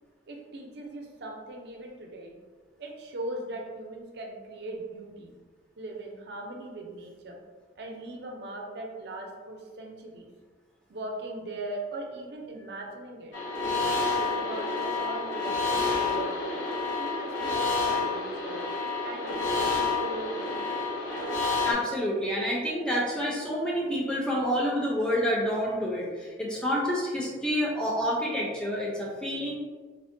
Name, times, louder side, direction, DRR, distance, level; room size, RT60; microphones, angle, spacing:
voice 1, 0.3-2.3 2.8-5.3 5.8-7.4 7.8-10.3 10.9-16.4 17.0-18.7 19.0-20.9, right 2 dB, 60° right, 1 dB, 0.5 m, -39 dB
sound 1, 13.3-21.7, left 4 dB, 90° left, 1.1 m, -29 dB
voice 2, 21.7-29.6, equal, 5° left, -4 dB, 0.4 m, -28 dB
3.4 x 2.1 x 2.5 m, 1.4 s
head